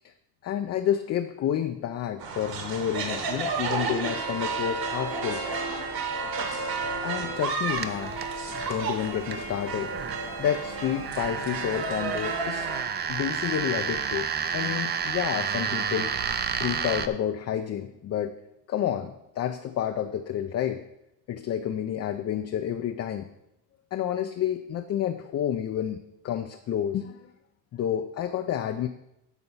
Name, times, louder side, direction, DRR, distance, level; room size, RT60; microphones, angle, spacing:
voice 1, 0.4-5.4 7.0-8.2 8.7-9.9 10.4-12.7 13.1-14.3 14.5-16.1 16.5-18.3 18.7-20.8 21.3-23.3 23.9-27.3 27.7-28.9, left 10 dB, 35° left, 6 dB, 0.5 m, -29 dB
sound 1, 2.2-12.8, right 4 dB, 50° right, 1.9 m, -32 dB
sound 2, 7.7-17.1, right 7 dB, 25° right, 0.4 m, -31 dB
12.5 x 4.4 x 5.5 m, 0.85 s
cardioid pair, 130°, 46 cm